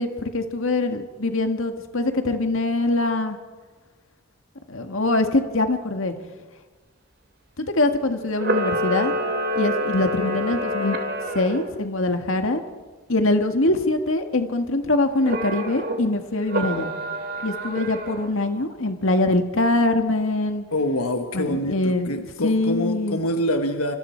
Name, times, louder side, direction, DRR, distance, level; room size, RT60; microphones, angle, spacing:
voice 1, 0.0-3.4 4.7-6.1 7.6-9.1 9.6-11.0 11.3-12.6 13.1-16.9 17.4-20.6 21.3-23.2, left 2 dB, 65° left, 6 dB, 1.7 m, -23 dB
Camera, 8.3-11.6 15.2-16.0 16.5-18.3, equal, 45° right, 2.7 m, -27 dB
voice 2, 20.7-24.0, left 1 dB, 90° left, 6 dB, 1.4 m, -25 dB
27.5 x 26.5 x 4.5 m, 1.4 s
head